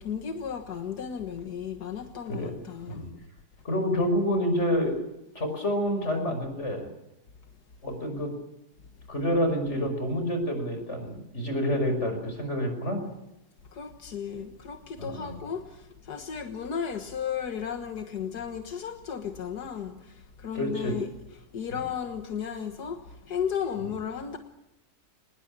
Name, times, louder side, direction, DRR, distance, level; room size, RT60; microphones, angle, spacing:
voice 1, 0.0-3.1 13.7-24.4, left 7 dB, 85° left, 2.0 m, -34 dB
voice 2, 3.6-4.9 5.3-6.9 7.8-8.3 9.1-13.0 15.0-15.4 20.5-20.9, equal, 45° left, 6.1 m, -28 dB
25.0 x 20.5 x 8.7 m
omnidirectional pair, 1.7 m